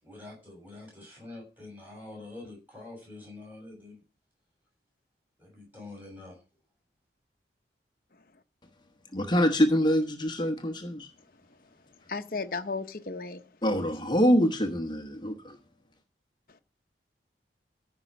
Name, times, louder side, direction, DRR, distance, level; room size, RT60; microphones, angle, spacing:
voice 1, 0.0-4.0 5.4-6.4, left 2 dB, 10° right, 6.8 m, -46 dB
voice 2, 9.1-11.1 13.6-15.6, equal, 25° left, 1.1 m, -25 dB
voice 3, 12.1-13.4, left 4 dB, 50° left, 0.9 m, -34 dB
14.5 x 5.6 x 6.0 m
head